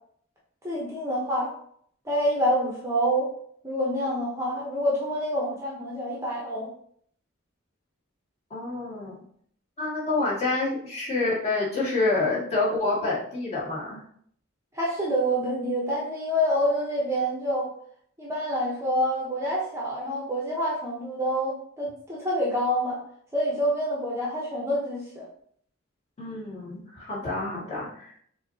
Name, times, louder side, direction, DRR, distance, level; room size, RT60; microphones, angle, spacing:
voice 1, 0.6-1.5 2.0-3.3 3.6-6.7 12.2-12.3 14.7-17.7 18.2-23.0 23.3-25.2, equal, 15° right, -4 dB, 0.8 m, -27 dB
voice 2, 8.5-9.2 9.8-14.0 26.2-28.2, left 3 dB, 30° left, -7 dB, 1.9 m, -28 dB
6.5 x 2.8 x 2.8 m, 0.63 s
head